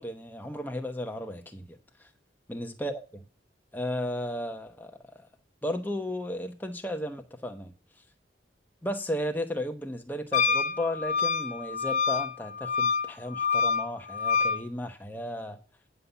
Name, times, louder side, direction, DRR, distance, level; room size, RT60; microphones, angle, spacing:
voice 1, 0.0-1.8 2.5-2.9 3.7-5.0 5.6-7.7 8.8-15.6, left 1 dB, 10° left, 1.0 m, -34 dB
Wind instrument woodwind instrument, 10.3-14.6, left 5 dB, 40° left, 0.9 m, -27 dB
9.7 x 5.6 x 6.9 m
head